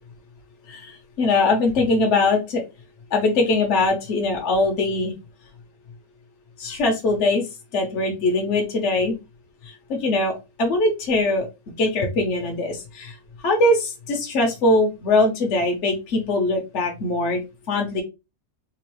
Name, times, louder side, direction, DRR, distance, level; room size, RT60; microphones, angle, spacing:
voice 1, 0.7-2.6 3.1-5.1 6.6-7.4 7.7-9.1 9.9-11.5 11.8-13.2 13.4-17.4 17.7-18.0, left 2 dB, 60° left, 1 dB, 1.0 m, -21 dB
3.8 x 2.4 x 3.0 m, 0.25 s
omnidirectional pair, 1.5 m